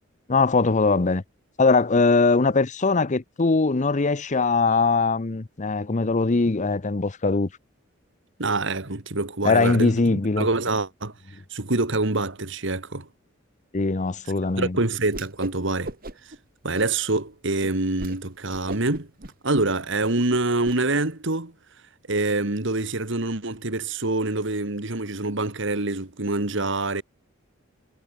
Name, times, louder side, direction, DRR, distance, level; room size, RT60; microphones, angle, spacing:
voice 1, 0.3-1.2 1.6-7.5 9.4-10.5 13.7-14.8, left 3 dB, 35° left, 0.7 m, -21 dB
voice 2, 8.4-11.1 11.5-13.1 14.6-15.9 16.6-19.1 19.4-21.5 22.1-27.0, right 2 dB, 65° right, 2.3 m, -25 dB
Whoosh swoosh swish, 15.1-15.6 15.8-16.4 16.7-17.2 17.6-17.7 18.0-18.2 18.5-20.8, right 2 dB, 45° right, 3.2 m, -38 dB
head